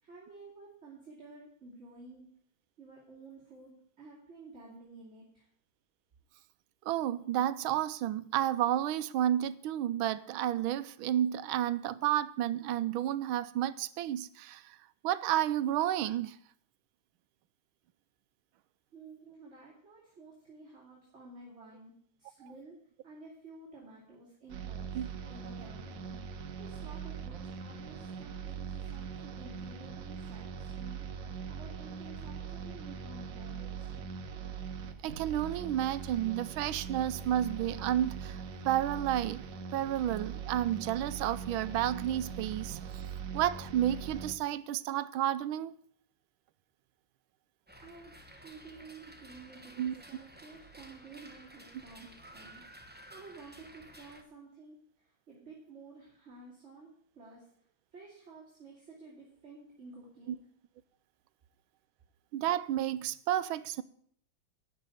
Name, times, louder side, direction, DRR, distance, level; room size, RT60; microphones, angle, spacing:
voice 1, 0.0-2.3 2.8-5.5 18.9-21.9 22.2-22.8 23.0-24.9 25.2-26.2 26.6-34.1 47.8-48.2 48.4-57.5 57.9-60.4, right 3 dB, 35° right, 2.9 m, -52 dB
voice 2, 6.8-14.8 15.0-16.4 24.9-25.1 35.0-39.4 39.7-42.8 43.3-45.7 49.8-50.0 62.3-63.8, right 12 dB, 90° right, 1.5 m, -31 dB
sound 1, 24.5-44.3, right 6 dB, 70° right, 1.6 m, -41 dB
sound 2, 47.7-54.2, right 1 dB, 10° right, 0.7 m, -53 dB
12.0 x 5.6 x 9.1 m
omnidirectional pair, 2.2 m